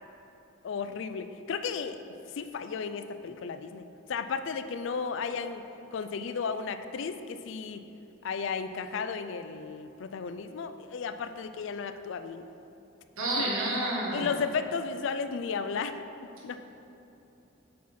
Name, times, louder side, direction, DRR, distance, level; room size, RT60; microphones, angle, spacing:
voice 1, 0.6-2.0 2.4-5.6 5.9-7.8 8.2-12.4 13.4-13.5 14.1-16.0 16.4-16.6, left 5 dB, 60° left, 9 dB, 0.3 m, -34 dB
voice 2, 13.2-14.4, right 1 dB, 75° right, -3 dB, 1.5 m, -29 dB
7.6 x 5.5 x 4.2 m, 2.9 s
head